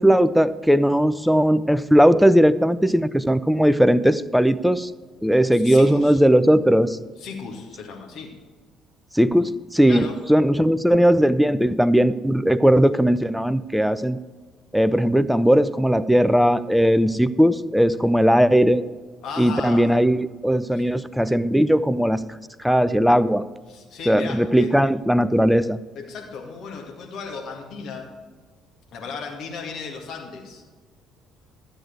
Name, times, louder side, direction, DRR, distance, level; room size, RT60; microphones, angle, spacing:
voice 1, 0.0-4.9 5.2-7.0 9.1-14.2 14.7-18.8 19.4-22.2 22.6-23.4 24.1-25.8, equal, ahead, 15 dB, 0.5 m, -18 dB
voice 2, 5.5-6.2 7.2-8.4 9.9-10.2 19.2-19.9 20.7-21.0 23.7-24.7 26.0-28.1 28.9-30.6, left 5 dB, 55° left, 1 dB, 2.1 m, -36 dB
13.5 x 7.9 x 4.6 m, 1.4 s
figure-of-eight pair, 50°, 0 cm